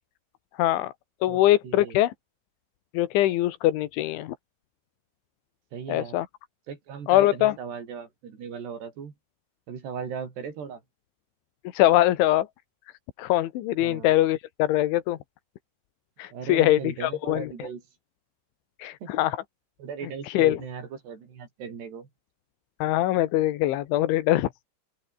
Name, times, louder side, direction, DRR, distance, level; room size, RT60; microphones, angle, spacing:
voice 1, 0.6-0.9 1.2-2.1 2.9-4.4 5.9-6.3 7.1-7.6 11.7-12.5 13.2-15.2 16.2-17.7 18.8-19.4 20.2-20.6 22.8-24.5, left 14 dB, 90° left, 3.8 m, -23 dB
voice 2, 1.3-2.0 5.7-6.2 6.7-9.1 9.7-10.8 13.8-14.1 16.3-17.8 19.0-19.1 19.8-22.1, right 6 dB, 65° right, 6.1 m, -38 dB
open air
omnidirectional pair, 5.3 m